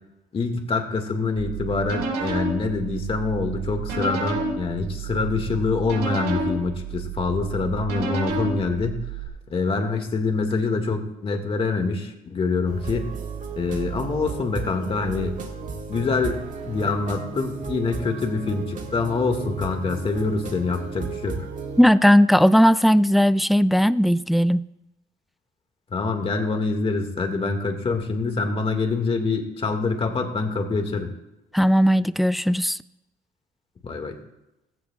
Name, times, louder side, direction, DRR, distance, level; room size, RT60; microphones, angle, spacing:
voice 1, 0.3-9.0 9.5-13.1 13.6-15.4 15.9-21.5 25.9-31.1 33.8-34.1, left 4 dB, 35° left, 2.0 m, -25 dB
sound 1, 1.4-9.3, right 3 dB, 90° right, 4.9 m, -30 dB
sound 2, 12.7-21.8, right 5 dB, 50° right, 2.0 m, -34 dB
voice 2, 21.8-24.7 31.5-32.8, equal, ahead, 0.3 m, -17 dB
17.0 x 16.0 x 2.4 m
cardioid pair, 110°, 17 cm